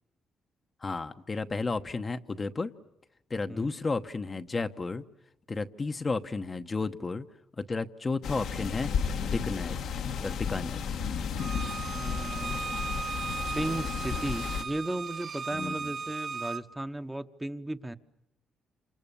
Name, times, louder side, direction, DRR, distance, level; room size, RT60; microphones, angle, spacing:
voice 1, 0.8-2.7 3.3-5.0 5.5-7.2 7.6-8.9 9.2-9.8 10.2-10.8 15.5-15.9, left 3 dB, 30° left, 7 dB, 1.0 m, -32 dB
sound 1, 8.2-14.6, left 6 dB, 75° left, 1.7 m, -33 dB
Bowed string instrument, 11.4-16.6, right 5 dB, 45° right, 1.1 m, -36 dB
voice 2, 11.8-12.8 13.5-18.0, right 1 dB, 10° right, 8 dB, 1.1 m, -35 dB
28.5 x 27.5 x 7.0 m, 0.83 s
cardioid pair, 90°, 0 cm